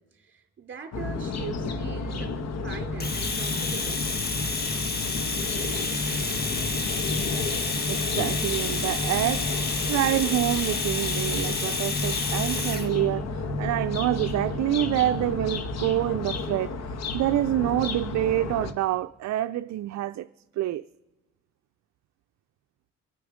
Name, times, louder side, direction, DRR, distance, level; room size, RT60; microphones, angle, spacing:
voice 1, 0.0-4.0, right 6 dB, 40° right, 3.2 m, -41 dB
sound 1, 0.9-18.7, left 3 dB, 60° left, 1.3 m, -31 dB
Domestic sounds home sounds, 3.0-12.9, left 3 dB, 30° left, 1.6 m, -30 dB
voice 2, 7.9-20.3 20.6-20.8, right 14 dB, 65° right, 0.5 m, -27 dB
24.5 x 8.4 x 5.0 m
cardioid pair, 90°, 30 cm